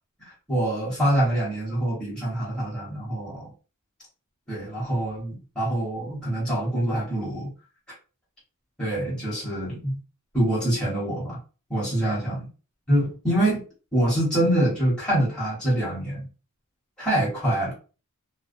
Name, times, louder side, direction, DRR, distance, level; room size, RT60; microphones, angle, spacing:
voice 1, 0.2-3.5 4.5-7.5 8.8-10.0 10.3-11.4 11.7-12.5 12.9-13.6 13.9-16.2 17.0-17.7, right 1 dB, 5° left, -9 dB, 1.2 m, -25 dB
2.3 x 2.3 x 2.5 m, 0.34 s
head